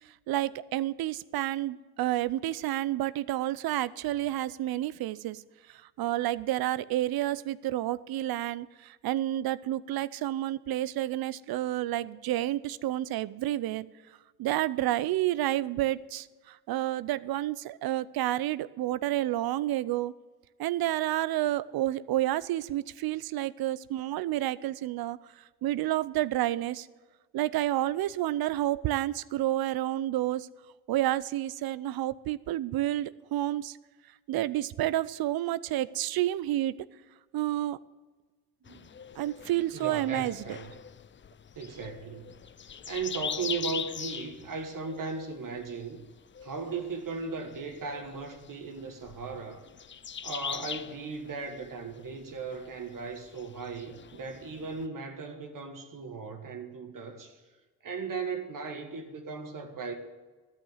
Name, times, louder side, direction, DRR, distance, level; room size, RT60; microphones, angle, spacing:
voice 1, 0.3-5.4 6.0-13.9 14.4-20.1 20.6-25.2 25.6-26.9 27.3-30.5 30.9-33.8 34.3-36.7 37.3-37.8 39.2-40.6, right 14 dB, 75° right, 17 dB, 0.5 m, -30 dB
sound 1, 38.7-54.9, left 7 dB, 30° left, 0.5 m, -42 dB
voice 2, 39.7-40.7 41.5-42.3 42.9-46.0 46.4-49.6 50.2-57.4 57.8-59.9, right 5 dB, 55° right, 4 dB, 1.6 m, -37 dB
12.5 x 5.7 x 9.2 m, 1.3 s
supercardioid pair, 50°, 38 cm